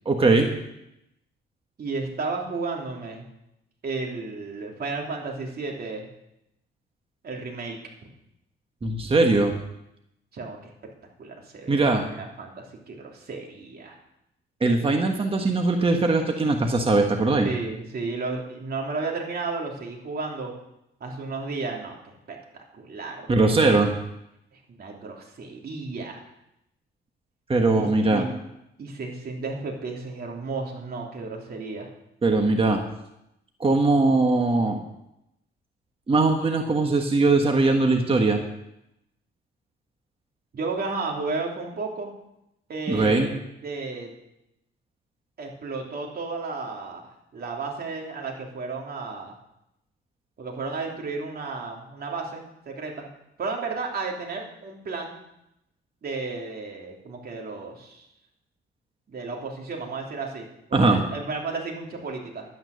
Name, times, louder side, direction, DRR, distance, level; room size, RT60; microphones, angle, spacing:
voice 1, 0.0-0.5 8.8-9.5 11.7-12.0 14.6-17.5 23.3-23.9 27.5-28.2 32.2-32.8 33.6-34.8 36.1-38.4 42.9-43.3 60.7-61.0, right 3 dB, 30° right, 3 dB, 1.4 m, -20 dB
voice 2, 1.8-3.2 3.8-6.1 7.2-7.8 10.3-10.7 11.2-14.0 17.4-20.5 21.0-23.5 24.5-26.2 27.8-28.3 28.8-31.9 40.5-42.1 42.7-43.3 43.6-44.1 45.4-49.3 50.4-53.1 53.4-55.1 56.0-58.1 59.1-62.4, right 3 dB, 50° right, 0 dB, 3.2 m, -33 dB
11.5 x 9.3 x 6.7 m, 0.84 s
cardioid pair, 90°, 20 cm